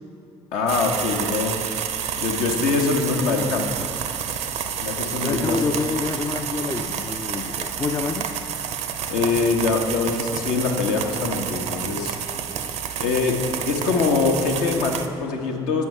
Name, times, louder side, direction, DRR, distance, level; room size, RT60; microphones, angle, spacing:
voice 1, 0.5-1.6 2.2-3.7 4.8-5.6 9.1-12.2 13.0-13.4 13.6-15.9, left 4 dB, 65° left, 2 dB, 0.8 m, -23 dB
sound 1, 0.7-15.1, right 8 dB, 55° right, 0.5 m, -29 dB
voice 2, 5.2-8.3, left 4 dB, 20° left, 6 dB, 0.4 m, -27 dB
8.1 x 5.5 x 4.7 m, 2.9 s
figure-of-eight pair, 45°, 14 cm